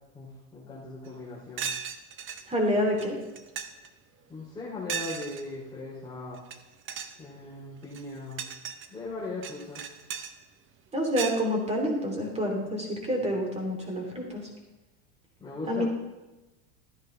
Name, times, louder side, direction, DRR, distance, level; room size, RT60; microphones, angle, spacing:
voice 1, 0.1-1.7 4.3-6.4 7.2-8.5 8.9-9.9 15.4-15.8, left 3 dB, 10° left, -9 dB, 3.0 m, -39 dB
sound 1, 1.1-1.2 1.6-2.4 3.0-3.1 3.4-3.9 4.9-5.4 6.4-6.6 6.9-7.2 7.8-8.9 9.4-10.3 11.2-11.4, right 7 dB, 35° right, 0.9 m, -36 dB
voice 2, 2.5-3.2 10.9-14.5 15.7-15.8, equal, 20° right, 1 dB, 3.2 m, -28 dB
13.5 x 10.0 x 3.4 m, 1.1 s
supercardioid pair, 115°, 36 cm